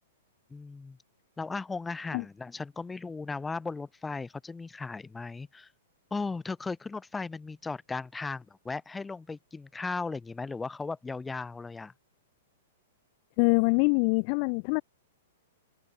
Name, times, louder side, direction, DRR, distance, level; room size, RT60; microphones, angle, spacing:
voice 1, 0.5-1.0 1.4-5.7 6.1-11.9, left 4 dB, 10° left, 0.9 m, -36 dB
voice 2, 13.4-14.8, left 40 dB or more, 45° left, 0.3 m, -24 dB
open air
hypercardioid pair, 120°, 0 cm